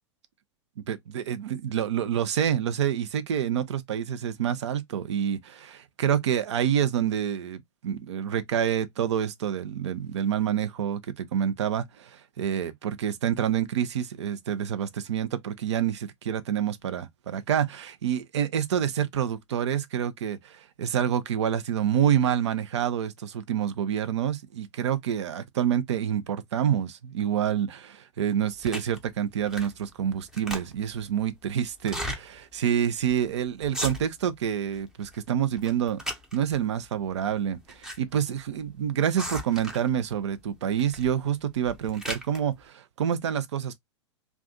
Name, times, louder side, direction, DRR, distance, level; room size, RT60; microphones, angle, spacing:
voice 1, 0.9-36.0 36.3-43.8, right 9 dB, 70° right, 0.6 m, -27 dB
sound 1, 28.6-29.0 29.5-29.8 30.1-31.0 31.8-32.2 32.7-32.8 33.0-33.3 33.6-34.3 34.7-35.2 35.6-36.6 37.4-38.0 38.2-38.3 39.2-39.9 40.8-41.1 41.5-42.4, equal, 5° right, 0.7 m, -36 dB
2.5 x 2.3 x 3.7 m
figure-of-eight pair, 100°, 15 cm